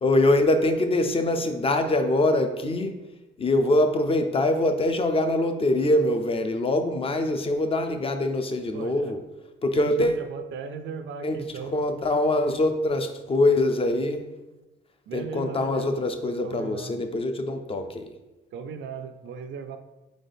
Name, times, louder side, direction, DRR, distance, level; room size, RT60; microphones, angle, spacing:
voice 1, 0.0-3.0 3.4-9.2 9.6-10.2 11.2-14.2 15.1-18.1, left 1 dB, 30° left, 7 dB, 0.5 m, -24 dB
voice 2, 8.7-9.1 9.7-11.8 15.1-16.0 16.4-17.0 18.5-19.8, right 5 dB, 70° right, 8 dB, 0.5 m, -37 dB
4.1 x 3.7 x 3.5 m, 1.0 s
cardioid pair, 90°, 20 cm